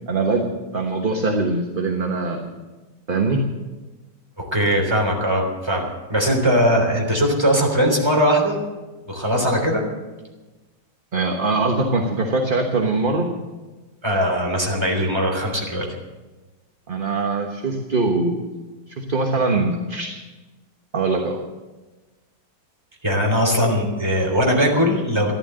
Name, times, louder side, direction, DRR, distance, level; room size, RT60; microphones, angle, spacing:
voice 1, 0.1-0.5 0.7-2.5 3.1-3.4 11.1-13.3 16.9-18.4 18.9-20.2 20.9-21.4, right 3 dB, 35° right, 3 dB, 1.2 m, -22 dB
voice 2, 4.4-8.6 9.1-9.8 14.0-15.8 23.0-25.3, equal, 15° right, 0 dB, 3.4 m, -20 dB
14.5 x 11.5 x 7.6 m, 1.2 s
omnidirectional pair, 1.9 m